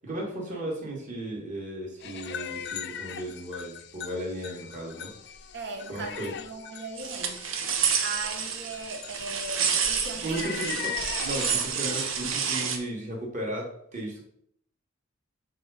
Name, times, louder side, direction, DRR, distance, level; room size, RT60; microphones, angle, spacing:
voice 1, 0.0-5.1 5.9-6.3 10.2-14.2, right 1 dB, 40° right, -2 dB, 2.2 m, -35 dB
sound 1, 2.0-12.3, left 8 dB, 60° left, 0.5 m, -40 dB
voice 2, 5.5-7.4 8.0-10.7 10.9-11.0 11.8-12.0, right 3 dB, 60° right, 4 dB, 1.2 m, -38 dB
sound 2, 7.0-12.8, right 6 dB, 85° right, 0.9 m, -29 dB
6.7 x 3.8 x 5.0 m, 0.67 s
head